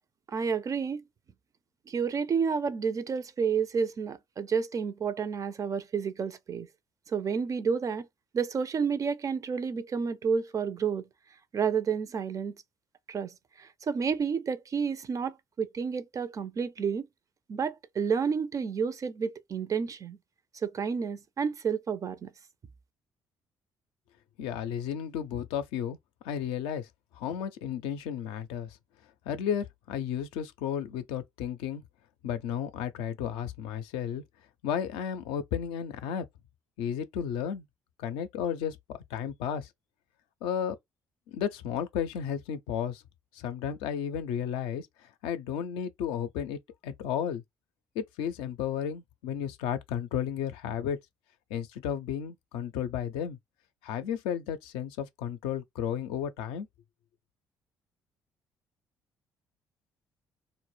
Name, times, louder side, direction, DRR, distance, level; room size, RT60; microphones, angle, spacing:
voice 1, 0.3-1.0 1.9-6.7 7.1-8.1 8.3-11.1 11.5-12.5 13.1-17.1 17.5-20.2 20.6-22.3, right 6 dB, 40° right, 0.4 m, -30 dB
voice 2, 24.4-26.0 26.2-26.9 27.1-28.8 29.3-31.8 32.2-34.2 34.6-36.3 36.8-37.7 38.0-39.7 40.4-40.8 41.3-43.0 43.3-47.4 48.0-51.0 51.5-53.4 53.8-56.7, left 8 dB, 75° left, 0.4 m, -33 dB
2.0 x 2.0 x 3.1 m
hypercardioid pair, 50°, 9 cm